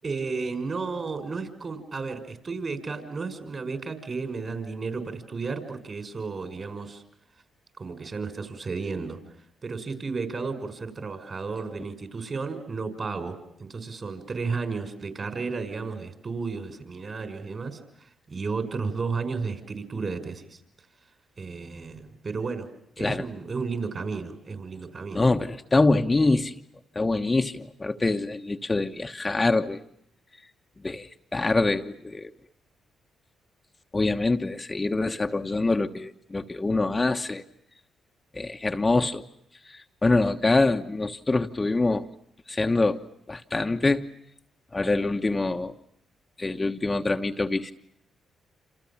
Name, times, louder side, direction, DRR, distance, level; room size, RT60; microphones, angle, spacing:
voice 1, 0.0-7.0 7.8-9.2 9.6-20.6 21.4-22.7 23.0-25.2, right 4 dB, 45° right, 7 dB, 5.9 m, -33 dB
voice 2, 25.1-26.6 26.9-29.8 30.8-32.3 33.9-37.4 38.3-39.2 39.7-42.1 42.5-43.0 43.3-44.1 44.7-45.7 46.4-47.7, left 3 dB, 25° left, 5 dB, 1.2 m, -25 dB
28.0 x 27.5 x 7.3 m, 0.73 s
supercardioid pair, 55°, 0 cm